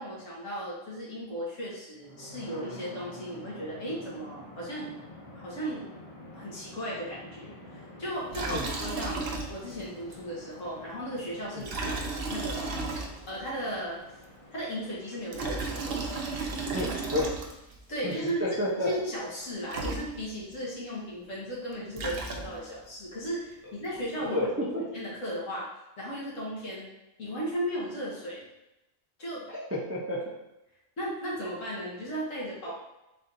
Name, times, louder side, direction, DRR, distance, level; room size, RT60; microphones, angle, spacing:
voice 1, 0.0-4.9 5.4-5.9 6.3-9.2 9.5-12.8 13.3-14.0 14.5-16.0 17.9-25.7 26.0-26.9 27.2-28.5 29.2-29.5 31.0-32.7, equal, 85° left, -6 dB, 1.8 m, -36 dB
sound 1, 1.9-17.9, left 1 dB, 30° left, 0.7 m, -48 dB
Liquid, 8.3-9.8 10.1-10.2 11.6-13.5 15.1-17.8 19.4-19.5 19.7-20.5 21.7-22.8, right 3 dB, 60° right, 0.8 m, -34 dB
voice 2, 16.7-17.3 18.0-18.9 24.3-24.8 29.5-30.3, left 1 dB, 20° right, -4 dB, 0.4 m, -31 dB
4.2 x 4.1 x 2.6 m, 0.95 s
omnidirectional pair, 1.3 m